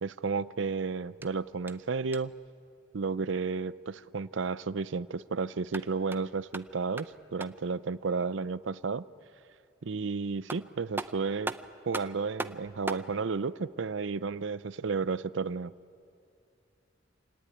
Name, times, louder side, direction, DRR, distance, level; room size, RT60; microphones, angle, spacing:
voice 1, 0.0-2.3 2.9-9.0 9.8-11.5 11.9-15.7, right 4 dB, 70° right, 17 dB, 0.6 m, -32 dB
sound 1, 1.2-2.5 5.5-7.7 10.0-10.1 10.5-13.1, right 2 dB, 10° right, 0.6 m, -40 dB
26.0 x 18.5 x 9.5 m, 2.5 s
head